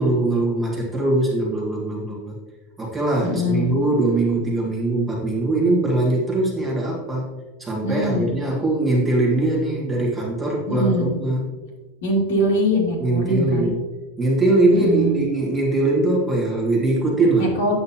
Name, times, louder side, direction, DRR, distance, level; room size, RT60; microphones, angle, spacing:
voice 1, 0.0-2.3 2.8-7.3 7.6-11.4 13.0-13.8 14.2-17.5, right 2 dB, 5° right, -4 dB, 1.6 m, -21 dB
voice 2, 3.2-3.7 7.8-8.3 10.7-11.1 12.0-13.7 14.7-15.2 17.4-17.7, equal, 70° left, -1 dB, 2.3 m, -22 dB
8.5 x 7.7 x 2.8 m, 1.2 s
supercardioid pair, 170°, 0 cm